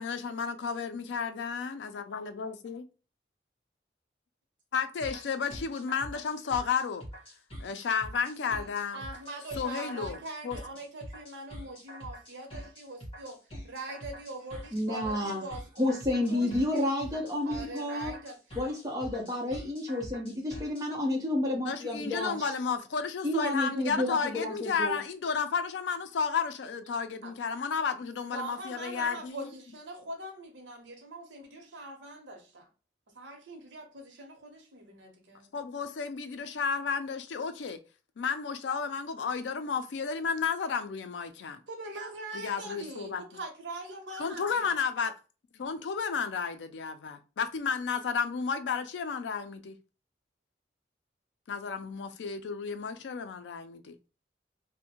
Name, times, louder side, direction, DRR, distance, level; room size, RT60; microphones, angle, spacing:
voice 1, 0.0-2.9 4.7-7.0 7.6-9.0 9.6-10.6 21.5-29.5 35.5-37.8 38.2-41.6 42.3-43.2 44.2-45.1 45.5-49.8 51.5-53.9, left 6 dB, 80° left, 0.4 m, -32 dB
sound 1, 5.0-20.9, equal, 30° left, 1.2 m, -44 dB
voice 2, 8.9-16.0 16.3-17.0 17.4-18.4 27.2-27.3 28.3-32.7 33.1-35.5 41.7-44.7, right 2 dB, 90° right, 0.8 m, -42 dB
voice 3, 14.7-15.4 15.8-18.1 18.6-22.5 23.2-25.0, left 1 dB, 20° right, 0.8 m, -30 dB
2.6 x 2.1 x 2.8 m
head